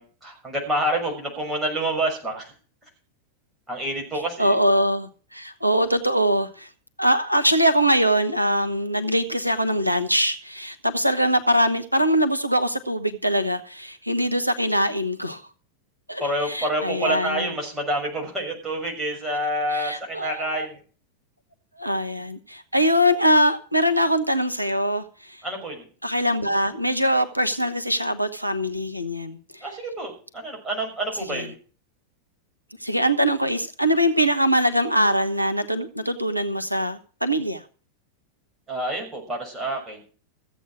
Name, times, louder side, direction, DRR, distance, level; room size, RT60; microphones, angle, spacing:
voice 1, 0.0-2.5 3.7-4.5 16.2-20.8 25.4-25.9 29.6-31.6 38.7-40.0, right 1 dB, 10° right, 0 dB, 6.3 m, -28 dB
voice 2, 4.4-6.7 7.0-15.4 16.1-17.5 19.7-20.7 21.8-25.4 26.0-29.6 31.3-31.4 32.8-37.6, equal, 90° right, 10 dB, 0.8 m, -22 dB
15.0 x 8.2 x 6.2 m, 0.39 s
figure-of-eight pair, 90°, 0 cm